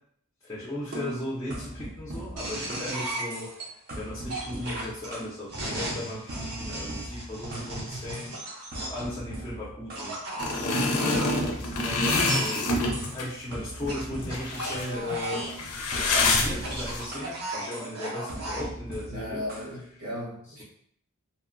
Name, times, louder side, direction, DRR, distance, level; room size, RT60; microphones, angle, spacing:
voice 1, 0.4-8.4 8.8-12.7 13.1-15.5 16.1-19.4 20.5-20.6, left 1 dB, 15° left, -7 dB, 0.5 m, -37 dB
sound 1, 0.9-3.0 3.3-3.6 3.9-5.4 5.7-7.7 8.1-8.3 8.7-10.1 10.5-12.6 12.9-13.2 13.5-14.9 15.3-17.4 17.7-18.0 18.3-19.7, right 1 dB, 45° right, 0.6 m, -40 dB
sound 2, 2.4-3.6 4.3-9.1 9.9-11.3 12.2-12.6 13.9-15.6 16.5-18.7, right 1 dB, 90° right, 0.9 m, -35 dB
sound 3, 10.4-13.3 13.9-14.0 14.2-14.9 15.1-17.0, left 2 dB, 80° left, 0.5 m, -26 dB
voice 2, 19.1-20.6, left 1 dB, 65° right, -5 dB, 1.0 m, -36 dB
2.8 x 2.1 x 2.5 m, 0.67 s
head